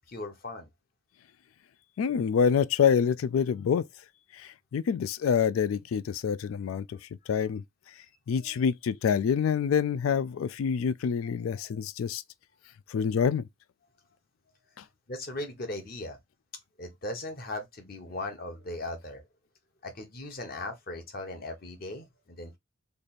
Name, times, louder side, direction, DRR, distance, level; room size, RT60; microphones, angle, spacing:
voice 1, 0.1-0.7 8.3-8.6 11.2-11.3 11.6-11.8 15.1-16.2 16.8-19.2 19.8-22.6, left 2 dB, 45° left, 1.0 m, -38 dB
voice 2, 2.0-3.8 4.3-7.6 8.3-12.2 12.9-13.5, left 7 dB, 90° left, 0.3 m, -26 dB
3.3 x 2.4 x 4.1 m
head